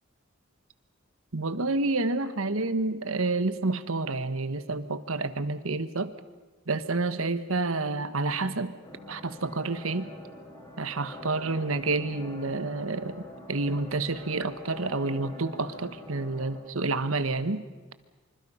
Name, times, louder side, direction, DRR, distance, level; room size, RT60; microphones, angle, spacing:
voice 1, 1.3-6.1 6.7-8.7 9.1-10.1 10.8-13.2 13.5-17.6, right 3 dB, 85° right, 12 dB, 1.3 m, -29 dB
sound 1, 8.8-16.6, left 1 dB, 20° left, 4.7 m, -45 dB
26.5 x 25.5 x 5.7 m, 1.3 s
head